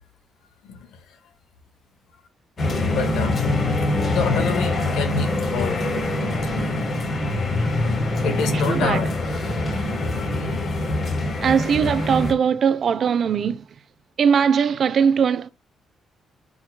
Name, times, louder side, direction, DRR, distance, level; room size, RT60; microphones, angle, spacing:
sound 1, 2.6-12.3, left 2 dB, 45° left, 3.6 m, -24 dB
voice 1, 2.9-3.4 4.1-6.0 8.2-9.1 10.4-10.6, left 5 dB, 90° left, 1.8 m, -27 dB
voice 2, 8.5-9.0 11.4-13.7 14.2-15.5, right 7 dB, 55° right, 0.7 m, -20 dB
11.0 x 5.0 x 2.3 m
cardioid pair, 90°, 0 cm